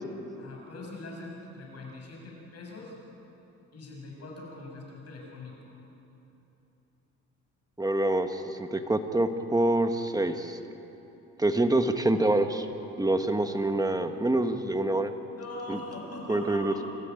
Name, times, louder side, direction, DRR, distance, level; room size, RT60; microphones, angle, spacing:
voice 1, 0.4-3.0 3.7-5.8 15.4-16.9, left 2 dB, 55° left, -1 dB, 7.0 m, -42 dB
voice 2, 7.8-10.6 11.4-12.7 13.0-15.1 15.7-15.8 16.3-16.7, right 2 dB, 10° right, 7 dB, 1.5 m, -26 dB
26.5 x 14.0 x 9.3 m, 3.0 s
cardioid pair, 90°, 30 cm